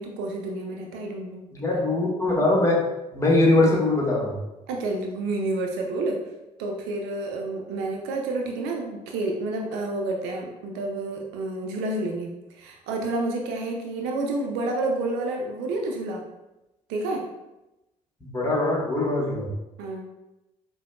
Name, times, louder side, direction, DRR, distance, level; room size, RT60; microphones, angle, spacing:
voice 1, 0.0-1.4 4.7-6.2 6.6-16.2 16.9-17.3 19.8-20.0, right 2 dB, 65° right, 1 dB, 0.5 m, -29 dB
voice 2, 1.5-2.8 3.1-4.3 18.2-19.5, left 2 dB, 15° left, -4 dB, 1.3 m, -22 dB
4.9 x 2.2 x 2.3 m, 0.97 s
figure-of-eight pair, 50°, 19 cm